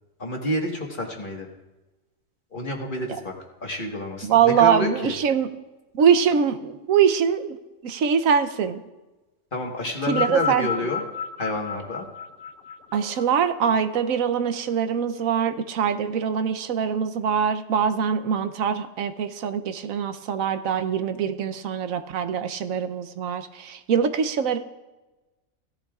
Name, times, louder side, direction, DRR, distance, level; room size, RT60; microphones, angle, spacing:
voice 1, 0.2-1.5 2.5-3.3 3.6-5.1 9.5-11.0 11.4-12.1, left 1 dB, 40° left, 0 dB, 1.6 m, -29 dB
voice 2, 4.2-5.5 5.9-7.6 7.8-8.8 10.1-10.7 12.9-24.6, right 7 dB, 80° right, 9 dB, 1.1 m, -23 dB
sound 1, 9.9-14.5 15.4-15.5, left 6 dB, 90° left, 1.0 m, -32 dB
17.0 x 12.0 x 2.4 m, 1.1 s
omnidirectional pair, 1.4 m